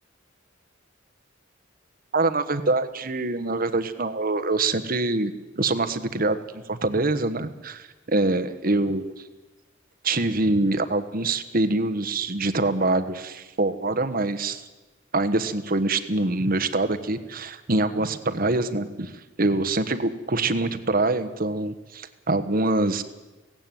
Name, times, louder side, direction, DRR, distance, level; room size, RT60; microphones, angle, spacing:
voice 1, 2.1-6.4 6.7-9.1 10.0-14.6 15.1-19.1 19.4-23.0, right 2 dB, 45° right, 9 dB, 1.2 m, -24 dB
17.0 x 16.5 x 9.2 m, 1.1 s
head